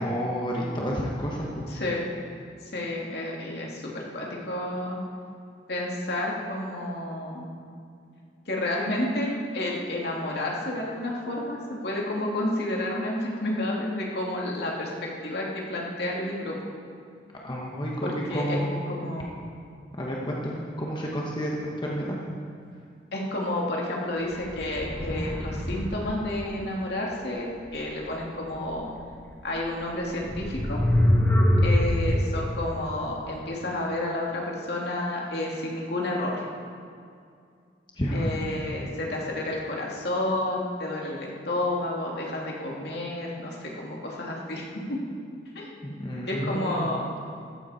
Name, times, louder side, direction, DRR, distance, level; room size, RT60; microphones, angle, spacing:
voice 1, 0.0-1.7 17.4-18.8 20.0-22.2 38.0-38.3 45.8-46.9, equal, 25° left, -3 dB, 1.4 m, -30 dB
voice 2, 1.7-2.0 2.6-5.0 5.7-7.5 8.5-16.6 18.0-18.6 18.9-19.3 23.1-28.9 29.4-30.8 31.6-36.5 38.1-45.0 45.5-45.7 46.3-47.1, left 1 dB, 65° left, -2 dB, 2.6 m, -30 dB
sound 1, 24.4-26.2 29.2-29.3 30.2-32.1, left 1 dB, 10° left, 1.9 m, -23 dB
14.5 x 14.5 x 4.3 m, 2.3 s
head